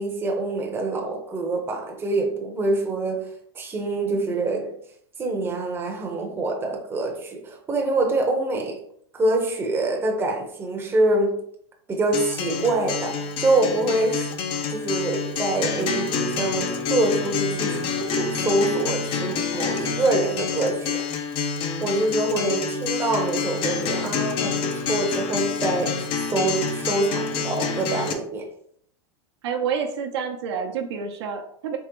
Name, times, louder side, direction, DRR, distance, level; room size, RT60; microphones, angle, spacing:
voice 1, 0.0-4.8 5.2-8.8 9.1-11.4 11.9-14.3 14.7-21.0 21.8-28.5, right 2 dB, 15° right, 0.7 m, -25 dB
Acoustic guitar, 12.1-28.1, left 6 dB, 40° left, 0.6 m, -27 dB
voice 2, 29.4-31.8, right 6 dB, 75° right, 0.8 m, -28 dB
3.6 x 3.2 x 3.0 m
supercardioid pair, 135°, 14 cm